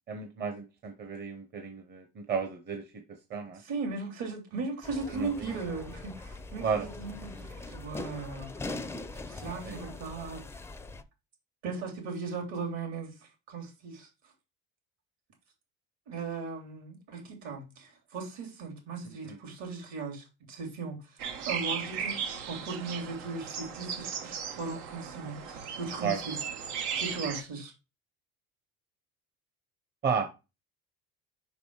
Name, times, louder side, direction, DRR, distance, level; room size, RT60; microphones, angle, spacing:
voice 1, 0.1-2.8 3.3-3.6 5.1-5.6 6.6-6.9 9.6-9.8 19.2-19.4 26.0-26.2 30.0-30.3, right 6 dB, 35° right, 1.0 m, -33 dB
voice 2, 3.6-8.8 9.3-10.4 11.6-13.1 13.5-14.1 16.1-26.4 27.0-27.7, right 4 dB, 65° right, 3.4 m, -38 dB
sound 1, 4.8-11.0, left 2 dB, 10° left, 0.5 m, -42 dB
sound 2, 21.2-27.4, right 7 dB, 85° right, 1.3 m, -36 dB
5.3 x 5.2 x 4.7 m
cardioid pair, 125°, 30 cm